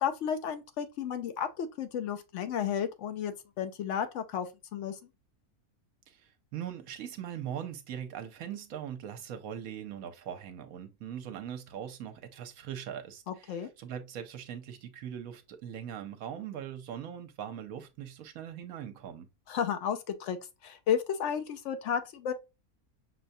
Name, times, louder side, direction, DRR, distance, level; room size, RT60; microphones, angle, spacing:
voice 1, 0.0-5.0 13.3-13.7 19.5-20.4 20.6-22.3, left 8 dB, 65° left, 0.8 m, -33 dB
voice 2, 6.1-19.3, right 9 dB, 70° right, 1.1 m, -41 dB
6.0 x 2.2 x 2.6 m
omnidirectional pair, 1.6 m